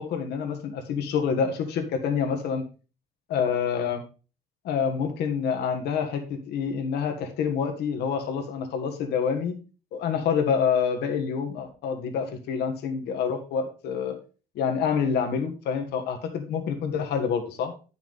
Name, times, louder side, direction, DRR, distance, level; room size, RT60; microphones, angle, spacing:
voice 1, 0.0-2.6 3.3-4.0 4.6-9.5 9.9-14.2 14.5-17.7, left 6 dB, 75° left, 5 dB, 1.5 m, -27 dB
9.3 x 5.8 x 4.0 m, 0.34 s
cardioid pair, 110°, 17 cm